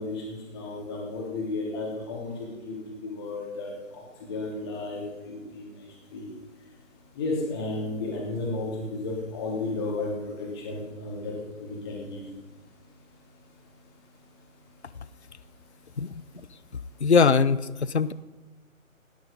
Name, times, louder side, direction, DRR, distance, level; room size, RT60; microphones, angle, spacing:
voice 1, 0.0-5.6 6.1-6.3 7.1-11.3 11.6-12.2, left 2 dB, 20° left, -3 dB, 3.2 m, -33 dB
voice 2, 17.0-18.1, left 5 dB, 50° left, 18 dB, 0.6 m, -21 dB
18.0 x 10.5 x 5.3 m, 1.2 s
figure-of-eight pair, 150°, 42 cm